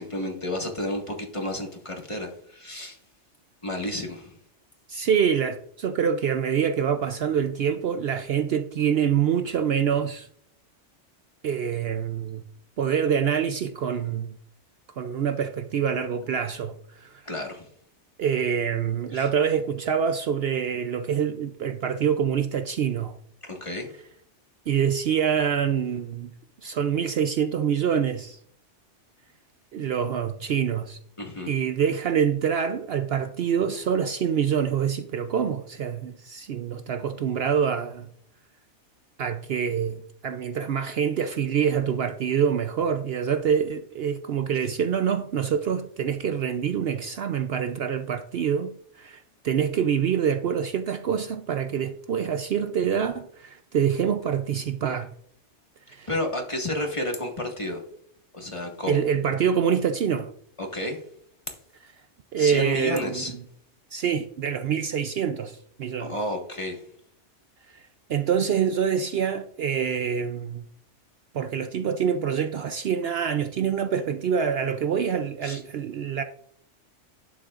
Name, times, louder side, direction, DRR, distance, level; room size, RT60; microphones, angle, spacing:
voice 1, 0.0-3.0 3.6-4.3 17.2-17.7 19.1-19.3 23.4-23.9 31.2-31.5 56.1-57.8 58.3-59.0 60.6-61.0 62.4-63.3 66.0-66.8 75.4-75.6, left 1 dB, 25° left, 1.7 m, -31 dB
voice 2, 4.9-10.3 11.4-12.4 12.8-14.3 15.0-17.2 18.2-23.1 24.7-26.3 26.6-28.4 29.7-31.0 31.5-38.1 39.2-55.1 55.9-56.1 58.9-60.3 62.3-63.4 63.9-66.1 67.7-70.7 71.3-76.2, right 7 dB, 60° right, 0.8 m, -26 dB
11.5 x 9.6 x 2.5 m
omnidirectional pair, 1.2 m